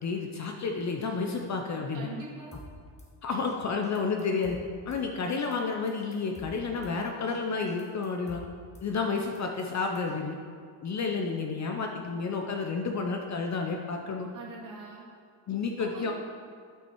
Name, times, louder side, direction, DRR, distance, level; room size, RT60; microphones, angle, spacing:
voice 1, 0.0-2.1 3.2-4.6 4.9-8.4 8.8-10.4 10.8-14.3 15.5-16.1, left 4 dB, 35° left, 2 dB, 0.6 m, -31 dB
voice 2, 1.9-2.6 14.3-15.1 15.9-16.1, right 3 dB, 40° right, -2 dB, 2.0 m, -42 dB
Drum kit / Snare drum, 2.5-3.1 3.5-3.6 3.8-5.0 5.4-5.6 5.9-6.9 7.3-7.4 7.7-8.9 9.2-10.2, equal, 15° left, 1.1 m, -50 dB
9.0 x 5.8 x 4.5 m, 2.1 s
cardioid pair, 125°, 50 cm